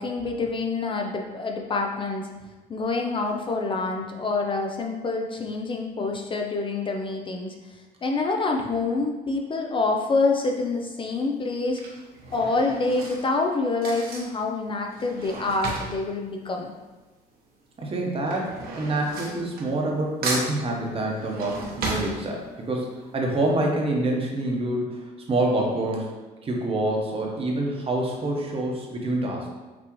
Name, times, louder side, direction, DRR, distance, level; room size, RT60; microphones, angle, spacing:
voice 1, 0.0-2.3 2.7-12.0 12.3-16.7, left 3 dB, 30° left, 2 dB, 0.4 m, -27 dB
Drawer open or close / Cutlery silverware, 10.2-10.6 11.4-17.3 17.6-20.0 20.2-22.8 23.2-23.3 23.5-23.6, right 2 dB, 60° right, 1.1 m, -35 dB
voice 2, 17.8-26.1 26.4-29.5, right 2 dB, 35° right, 0 dB, 1.0 m, -26 dB
6.0 x 2.7 x 3.0 m, 1.2 s
cardioid pair, 110°, 17 cm